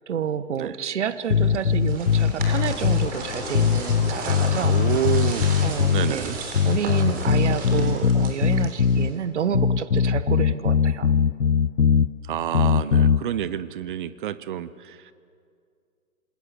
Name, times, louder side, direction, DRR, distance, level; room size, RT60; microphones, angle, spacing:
voice 1, 0.1-4.7 5.6-6.3 6.6-11.1, right 8 dB, 55° right, 14 dB, 1.3 m, -29 dB
sound 1, 1.3-3.1 3.5-6.1 6.5-9.1 9.5-12.1 12.5-13.2, left 7 dB, 80° left, 0.8 m, -20 dB
sound 2, 1.4-9.2, right 4 dB, 20° right, 3.8 m, -35 dB
sound 3, 2.4-9.2, left 7 dB, 40° left, 1.8 m, -39 dB
voice 2, 4.6-5.5 5.9-6.4 12.2-15.1, right 11 dB, 35° right, 16 dB, 0.9 m, -29 dB
27.0 x 20.5 x 6.7 m, 2.3 s
figure-of-eight pair, 120°, 43 cm